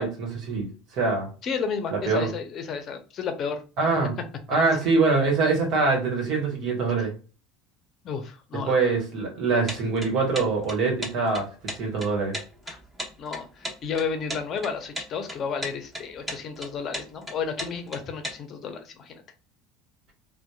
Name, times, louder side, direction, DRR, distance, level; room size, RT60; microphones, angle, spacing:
voice 1, 0.0-1.3 1.9-2.3 3.8-4.1 4.5-7.1 8.7-11.5 11.8-12.4, right 4 dB, 60° right, 1.2 m, -24 dB
voice 2, 1.4-3.6 7.0-7.1 8.0-8.9 12.7-12.8 13.2-19.2, left 6 dB, 45° left, 0.6 m, -32 dB
sound 1, 9.7-18.3, equal, 15° right, 1.2 m, -35 dB
2.7 x 2.2 x 2.2 m
hypercardioid pair, 90°, 0 cm